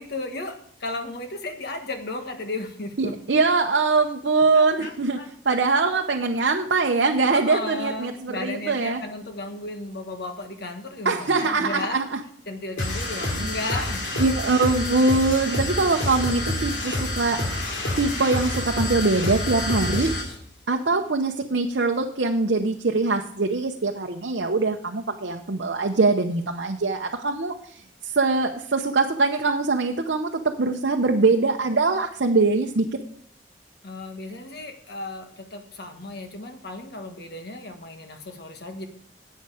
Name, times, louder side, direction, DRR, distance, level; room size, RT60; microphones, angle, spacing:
voice 1, 0.0-3.1 4.5-5.3 7.3-12.0 12.5-14.1 33.8-38.9, left 2 dB, 55° left, 5 dB, 1.4 m, -34 dB
voice 2, 3.0-9.0 11.0-12.2 13.2-13.5 14.2-17.4 18.0-20.1 20.7-32.8, right 3 dB, 65° right, 3 dB, 0.7 m, -23 dB
sound 1, 12.8-20.3, left 1 dB, 80° left, 2.9 m, -28 dB
11.0 x 8.4 x 4.9 m, 0.63 s
head